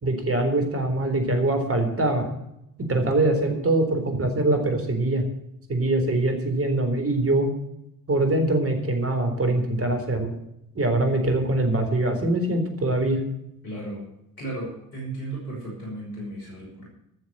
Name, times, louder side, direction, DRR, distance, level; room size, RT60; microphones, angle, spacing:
voice 1, 0.0-2.3 2.8-5.3 5.7-7.5 8.1-10.3 10.7-13.2, right 2 dB, 30° right, 5 dB, 4.0 m, -23 dB
voice 2, 13.6-14.0 14.4-16.9, right 2 dB, 90° left, -2 dB, 5.6 m, -35 dB
12.5 x 7.3 x 8.9 m, 0.82 s
hypercardioid pair, 50°, 45 cm